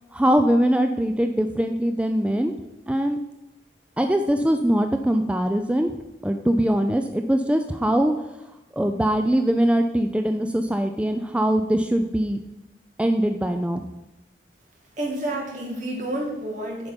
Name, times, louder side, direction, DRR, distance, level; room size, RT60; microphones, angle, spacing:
voice 1, 0.1-2.5 2.9-3.2 4.0-5.9 6.2-8.1 8.7-12.4 13.0-13.8, right 1 dB, 5° right, 6 dB, 0.4 m, -22 dB
voice 2, 15.0-16.9, right 1 dB, 45° right, -1 dB, 2.2 m, -29 dB
8.9 x 5.6 x 5.2 m, 0.97 s
head